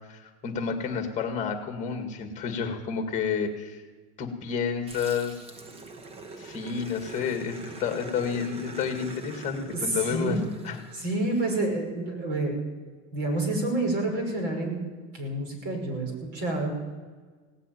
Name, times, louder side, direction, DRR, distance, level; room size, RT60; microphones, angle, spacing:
voice 1, 0.1-3.8 4.2-5.4 6.4-10.4 10.6-10.8, left 6 dB, 25° left, 5 dB, 2.1 m, -30 dB
Growling, 4.9-11.6, right 3 dB, 20° right, 0.9 m, -43 dB
voice 2, 9.7-10.4 10.9-12.5 13.1-14.8 15.1-16.7, right 2 dB, 50° right, 2 dB, 5.9 m, -28 dB
17.5 x 8.5 x 9.4 m, 1.4 s
cardioid pair, 170°, 30 cm